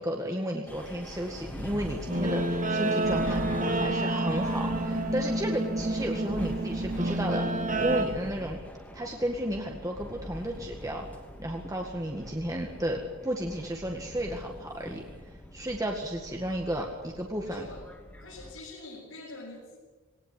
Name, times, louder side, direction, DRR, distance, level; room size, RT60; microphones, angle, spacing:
voice 1, 0.0-3.4 3.8-8.6 8.9-11.1 11.4-15.0 15.5-17.7, equal, 15° right, 1 dB, 1.9 m, -33 dB
sound 1, 0.7-18.6, equal, 10° left, 2.7 m, -43 dB
Guitar, 2.1-8.1, right 2 dB, 35° right, 1.9 m, -29 dB
voice 2, 3.2-4.1 5.1-5.5 17.4-17.8 18.2-19.8, left 2 dB, 70° left, -7 dB, 7.9 m, -44 dB
20.0 x 18.5 x 9.6 m, 1.2 s
head